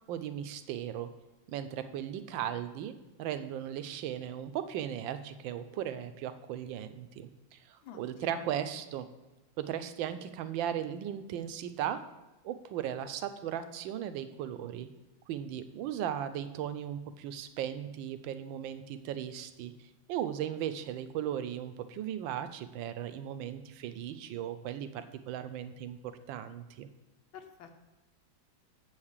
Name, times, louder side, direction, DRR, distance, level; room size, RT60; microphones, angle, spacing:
voice 1, 0.1-1.1 1.5-9.1 9.6-12.0 12.4-14.9 15.3-19.7 20.1-26.9, right 10 dB, 80° right, 11 dB, 1.3 m, -37 dB
voice 2, 7.8-8.4 27.3-27.7, left 7 dB, 80° left, 5 dB, 1.6 m, -50 dB
7.2 x 4.9 x 7.2 m, 1.1 s
omnidirectional pair, 2.2 m